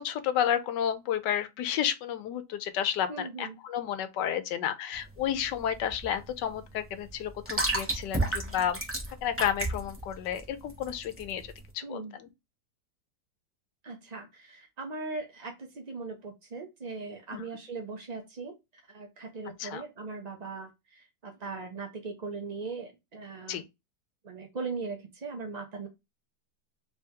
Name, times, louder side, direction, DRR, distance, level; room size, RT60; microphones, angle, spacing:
voice 1, 0.0-8.8 9.2-11.4 11.7-12.0 17.3-17.4 19.6-19.8 23.5-23.6, left 9 dB, 85° left, 1.2 m, -31 dB
voice 2, 3.1-3.6 11.8-12.2 13.8-18.5 18.9-23.6 24.2-25.9, right 4 dB, 70° right, 0.4 m, -39 dB
sound 1, 4.9-11.6, right 2 dB, 10° right, 0.7 m, -33 dB
3.3 x 2.8 x 3.4 m
omnidirectional pair, 1.9 m